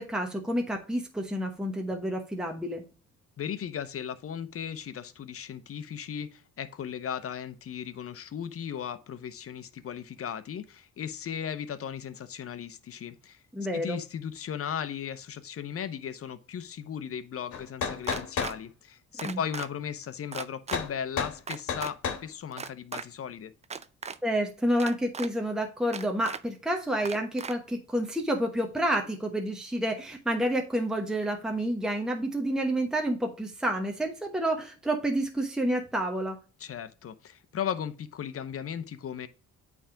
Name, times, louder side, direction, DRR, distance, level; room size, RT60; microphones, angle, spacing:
voice 1, 0.0-2.8 13.5-14.0 19.2-19.4 24.2-36.4, right 1 dB, ahead, 1.1 m, -29 dB
voice 2, 3.4-13.4 13.7-23.5 36.6-39.3, left 8 dB, 50° left, 0.8 m, -36 dB
sound 1, 17.5-18.6 20.7-20.9 21.2-21.4 21.7-22.2, left 6 dB, 75° left, 1.4 m, -31 dB
sound 2, 18.0-18.5 19.2-19.7 20.3-20.8 21.5-21.9 22.5-23.0 23.6-24.2 24.8-25.3 25.9-26.4 27.0-27.5, right 5 dB, 20° right, 0.5 m, -37 dB
8.6 x 3.5 x 4.9 m
cardioid pair, 90°, 30 cm